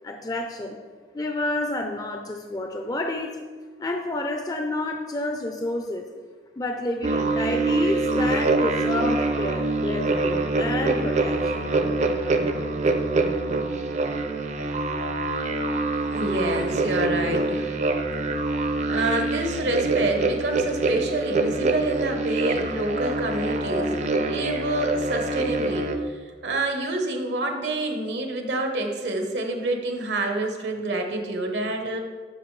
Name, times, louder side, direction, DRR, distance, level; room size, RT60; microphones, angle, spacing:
voice 1, 0.0-0.8 1.1-3.4 3.8-6.1 6.6-11.6, left 1 dB, 20° left, 3 dB, 0.5 m, -29 dB
sound 1, 7.0-26.0, right 2 dB, 40° right, 0.5 m, -25 dB
voice 2, 16.0-17.7 18.9-23.9 24.3-32.0, right 2 dB, 75° right, 3 dB, 1.0 m, -27 dB
11.0 x 5.6 x 3.2 m, 1.5 s
head